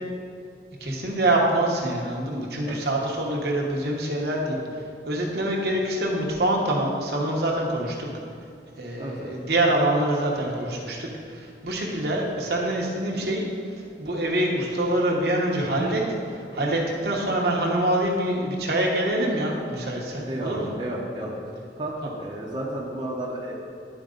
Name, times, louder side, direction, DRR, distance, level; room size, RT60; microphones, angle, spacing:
voice 1, 0.8-8.1 8.8-16.0 16.3-20.7, right 1 dB, 60° right, -1 dB, 1.1 m, -25 dB
voice 2, 9.0-9.3 20.1-21.3 21.8-23.5, right 1 dB, 25° right, -4 dB, 0.8 m, -33 dB
11.0 x 4.6 x 3.8 m, 2.4 s
head